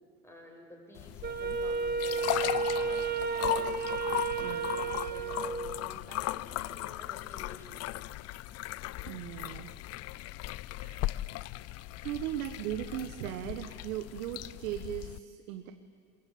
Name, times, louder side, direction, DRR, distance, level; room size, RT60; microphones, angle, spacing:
voice 1, 0.2-3.8 4.4-7.9, left 1 dB, 5° left, 0 dB, 6.9 m, -51 dB
sound 1, 1.0-15.2, left 17 dB, 35° left, 0.5 m, -37 dB
Wind instrument woodwind instrument, 1.2-5.9, right 5 dB, 20° right, 1.2 m, -32 dB
voice 2, 9.1-9.7 10.7-11.2 12.0-15.7, right 12 dB, 70° right, 8 dB, 1.4 m, -38 dB
23.0 x 22.0 x 8.7 m, 2.4 s
supercardioid pair, 110°, 44 cm